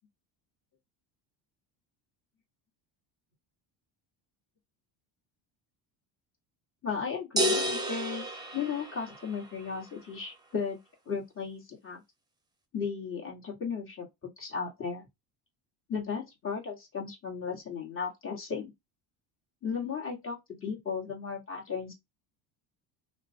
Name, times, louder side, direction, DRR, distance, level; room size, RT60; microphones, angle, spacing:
voice 1, 6.8-8.3 8.5-10.8 11.1-12.0 12.7-14.1 14.4-15.0 15.9-18.7 19.6-21.9, left 6 dB, 25° left, 1.5 m, -35 dB
sound 1, 7.4-9.4, right 1 dB, 10° right, 0.8 m, -30 dB
2.9 x 2.2 x 2.7 m
supercardioid pair, 95°, 49 cm